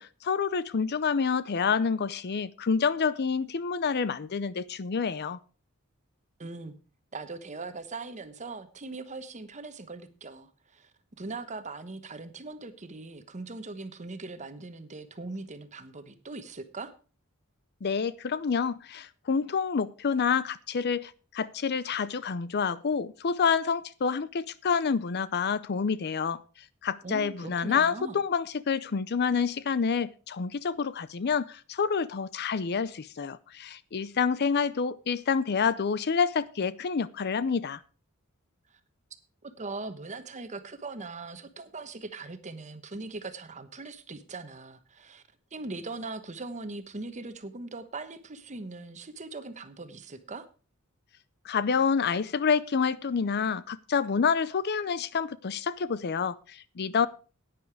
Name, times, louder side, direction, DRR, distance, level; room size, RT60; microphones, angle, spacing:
voice 1, 0.0-5.4 17.8-26.4 26.8-37.8 51.4-57.1, left 6 dB, 50° left, 0.5 m, -28 dB
voice 2, 6.4-6.8 7.1-10.9 11.2-16.9 27.0-28.2 38.7-38.8 39.4-45.2 45.5-50.5, right 3 dB, 35° right, 1.1 m, -40 dB
11.0 x 9.5 x 4.7 m
head